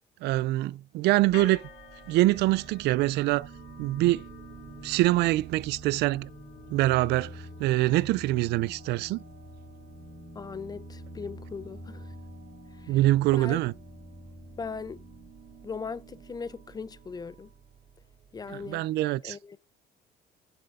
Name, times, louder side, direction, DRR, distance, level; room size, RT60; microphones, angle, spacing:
voice 1, 0.2-1.6 2.1-3.5 3.8-4.2 4.8-6.3 6.7-9.2 12.9-13.7 18.5-19.4, right 17 dB, 80° right, 0.4 m, -24 dB
sound 1, 1.2-18.8, right 9 dB, 55° right, 1.2 m, -53 dB
sound 2, 1.3-17.5, left 7 dB, 70° left, 1.8 m, -53 dB
sound 3, 2.3-15.3, equal, 5° left, 4.0 m, -48 dB
voice 2, 10.3-12.2 12.7-13.0 13.3-13.6 14.6-15.0 15.6-17.5 18.3-18.9 19.2-19.6, left 5 dB, 25° left, 0.5 m, -39 dB
7.7 x 6.9 x 3.7 m
cardioid pair, 110°, 17 cm